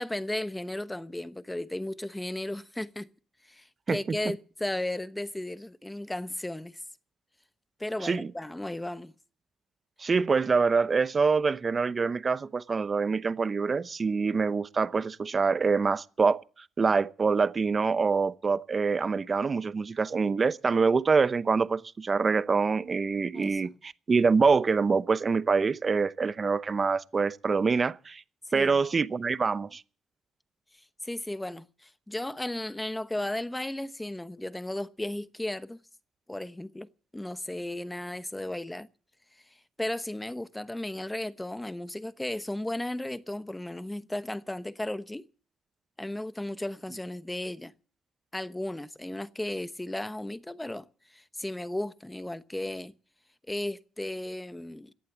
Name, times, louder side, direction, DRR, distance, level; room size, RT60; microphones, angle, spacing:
voice 1, 0.0-3.1 3.4-6.8 7.8-9.1 23.3-23.6 28.5-28.8 31.0-35.8 36.3-38.9 39.4-39.5 39.8-45.3 46.0-47.7 48.3-52.9 53.5-54.9, left 1 dB, 10° left, 1.0 m, -35 dB
voice 2, 8.0-8.3 10.0-16.4 16.8-28.2 28.5-29.8, right 4 dB, 35° right, 0.8 m, -25 dB
17.5 x 11.0 x 7.3 m
cardioid pair, 90°, 0 cm